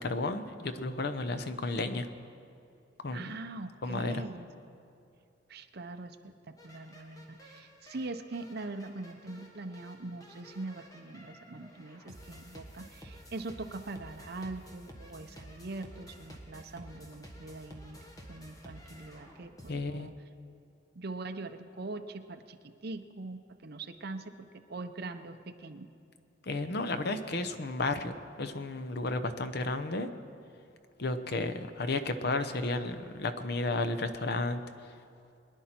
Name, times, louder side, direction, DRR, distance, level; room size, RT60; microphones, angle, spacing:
voice 1, 0.0-2.1 3.0-3.2 3.8-4.2 19.7-20.1 26.5-30.1 31.0-34.6, left 2 dB, 55° left, 8 dB, 0.8 m, -32 dB
voice 2, 3.1-4.5 5.5-18.0 18.3-20.2 21.0-25.9, right 2 dB, 55° right, 6 dB, 0.7 m, -42 dB
sound 1, 6.6-19.7, equal, 20° left, 1.4 m, -52 dB
23.5 x 10.5 x 4.4 m, 2.5 s
head